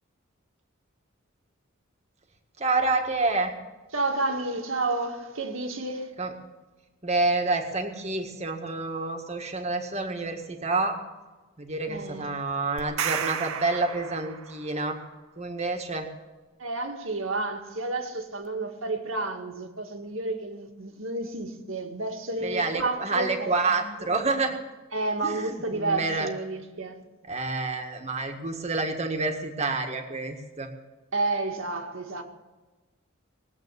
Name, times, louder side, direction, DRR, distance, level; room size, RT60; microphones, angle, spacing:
voice 1, 2.6-3.5 6.2-6.3 7.0-11.0 11.6-15.0 15.4-16.1 22.4-24.6 25.2-26.3 27.3-30.7, right 3 dB, 30° right, 1.8 m, -28 dB
voice 2, 3.9-6.1 11.9-12.3 16.6-24.1 24.9-27.0 31.1-32.2, right 2 dB, 70° right, 1.9 m, -31 dB
sound 1, 12.8-14.8, right 8 dB, 85° right, 0.9 m, -32 dB
20.5 x 8.5 x 8.3 m
head